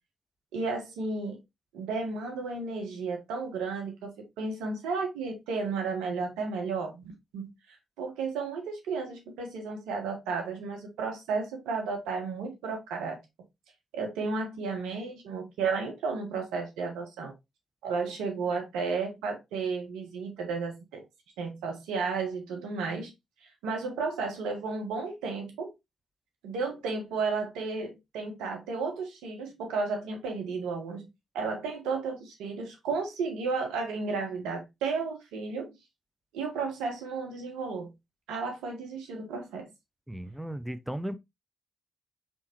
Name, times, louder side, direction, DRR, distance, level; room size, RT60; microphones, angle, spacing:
voice 1, 0.5-1.4 1.7-13.2 13.9-17.3 17.8-21.0 21.4-23.1 23.6-25.7 26.4-31.1 31.3-35.7 36.3-37.9 38.3-39.7, right 4 dB, 80° right, 1.2 m, -33 dB
voice 2, 40.1-41.1, right 1 dB, 5° right, 0.5 m, -35 dB
4.3 x 3.6 x 2.9 m
hypercardioid pair, 40°, 0 cm